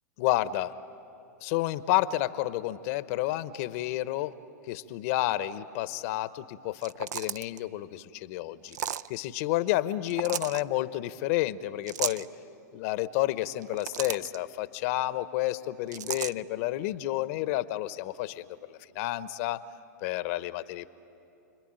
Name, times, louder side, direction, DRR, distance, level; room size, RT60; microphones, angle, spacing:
voice 1, 0.2-0.8 1.4-4.4 4.7-8.8 9.1-12.3 12.7-19.6 20.0-20.9, left 15 dB, 55° left, 15 dB, 0.9 m, -30 dB
sound 1, 6.8-7.6 8.7-9.1 10.1-10.6 11.9-12.3 13.5-14.4 15.9-16.3, right 10 dB, 70° right, 0.5 m, -34 dB
30.0 x 21.5 x 8.9 m, 2.8 s
hypercardioid pair, 110°, 10 cm